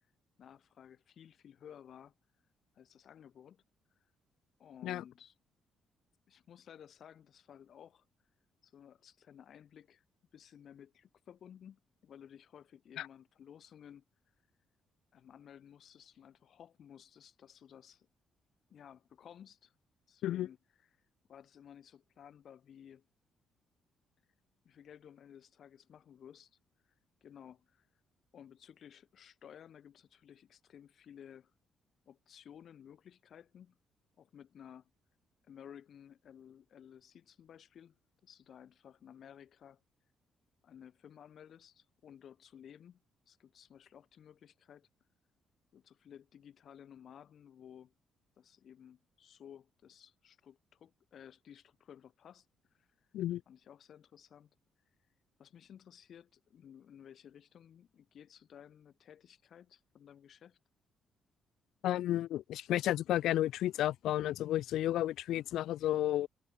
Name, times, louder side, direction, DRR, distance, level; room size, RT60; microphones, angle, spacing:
voice 1, 0.4-2.1 2.7-3.6 4.6-5.3 6.3-8.0 8.6-10.0 10.3-14.0 15.1-18.1 18.7-19.7 20.1-20.9 21.3-23.1 24.6-26.5 27.2-27.9 28.3-31.5 32.1-33.8 34.2-34.9 35.5-38.0 38.2-39.8 40.6-44.9 45.7-47.9 48.4-52.5 52.8-52.9 53.5-54.5 55.4-60.6, left 9 dB, 60° left, 5.8 m, -56 dB
voice 2, 61.8-66.3, left 13 dB, 80° left, 0.4 m, -32 dB
cardioid pair, 90°, 0 cm